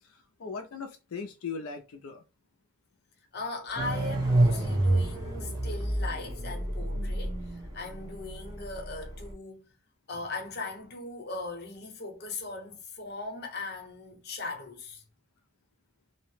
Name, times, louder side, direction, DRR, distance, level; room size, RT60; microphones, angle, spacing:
voice 1, 0.0-2.2, left 5 dB, 90° left, 0.4 m, -39 dB
voice 2, 3.3-9.7 10.1-15.0, left 3 dB, 50° left, 0.8 m, -39 dB
sound 1, 3.6-8.5, equal, 60° right, 0.9 m, -47 dB
sound 2, 3.8-9.3, right 1 dB, 20° right, 0.8 m, -28 dB
2.7 x 2.0 x 3.1 m
head